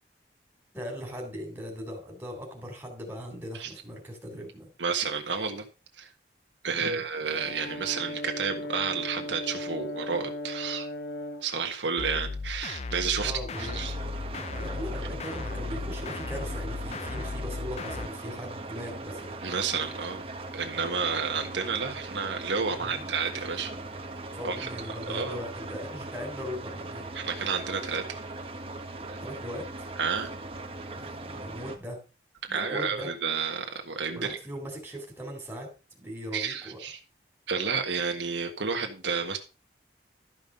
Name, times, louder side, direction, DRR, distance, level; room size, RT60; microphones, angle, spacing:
voice 1, 0.7-4.7 6.7-7.0 13.2-13.7 14.5-19.4 22.7-23.0 24.3-27.1 29.2-29.7 30.9-32.0 32.5-33.1 34.1-35.7 36.0-36.8, equal, 10° right, 0 dB, 4.0 m, -39 dB
voice 2, 4.8-5.6 6.0-6.1 6.6-10.9 11.4-13.3 13.6-13.9 19.4-20.2 20.5-23.7 24.4-25.4 27.1-28.2 29.1-29.2 30.0-30.3 32.4-34.4 36.3-37.0 37.5-39.4, right 5 dB, 85° right, 4 dB, 1.5 m, -31 dB
Brass instrument, 7.3-11.5, left 1 dB, 60° left, 1.4 m, -37 dB
sound 1, 12.0-18.1, left 3 dB, 35° left, 0.4 m, -36 dB
sound 2, 13.5-31.8, right 2 dB, 30° right, 1.5 m, -40 dB
13.0 x 5.6 x 5.3 m, 0.33 s
head